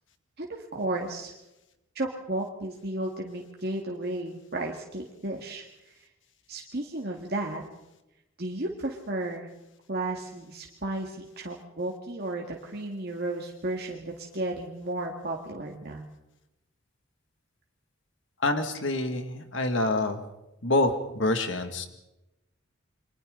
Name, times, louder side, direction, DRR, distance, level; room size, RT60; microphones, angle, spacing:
voice 1, 0.4-1.3 2.0-5.6 6.5-7.6 8.4-9.5 9.9-16.1, right 2 dB, 50° right, 0 dB, 2.1 m, -33 dB
voice 2, 18.4-20.2 20.6-21.9, left 2 dB, 60° left, 6 dB, 2.3 m, -26 dB
29.5 x 24.5 x 4.0 m, 0.95 s
head